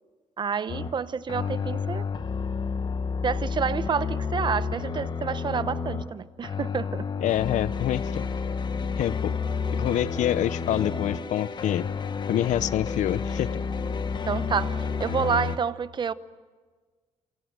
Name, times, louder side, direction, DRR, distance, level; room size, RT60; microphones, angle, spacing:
voice 1, 0.4-2.1 3.2-7.0 14.3-16.1, right 6 dB, 40° right, 14 dB, 0.9 m, -29 dB
sound 1, 0.7-1.0 1.3-6.1 6.4-15.6, left 5 dB, 35° left, 1.3 m, -30 dB
voice 2, 7.2-8.2 9.0-9.4 9.7-11.9 12.3-13.5, left 12 dB, 80° left, 17 dB, 0.7 m, -26 dB
27.5 x 26.0 x 7.8 m, 1.4 s
cardioid pair, 125°, 13 cm